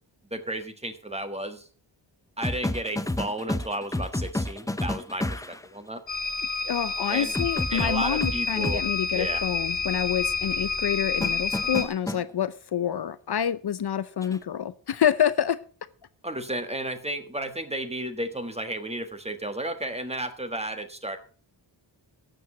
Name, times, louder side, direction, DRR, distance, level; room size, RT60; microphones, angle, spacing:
voice 1, 0.3-1.7 2.4-6.0 7.1-7.3 7.7-8.8 9.1-9.4 16.2-21.2, right 1 dB, 15° right, 8 dB, 1.4 m, -33 dB
sound 1, 2.4-5.7 7.3-8.8 11.2-12.2 14.2-14.4, left 1 dB, 10° left, 0.6 m, -30 dB
sound 2, 6.1-11.9, left 4 dB, 75° left, 1.5 m, -29 dB
voice 2, 6.6-15.6, left 9 dB, 60° left, 15 dB, 0.6 m, -27 dB
12.5 x 7.8 x 6.0 m, 0.40 s
wide cardioid pair, 140°, 45 cm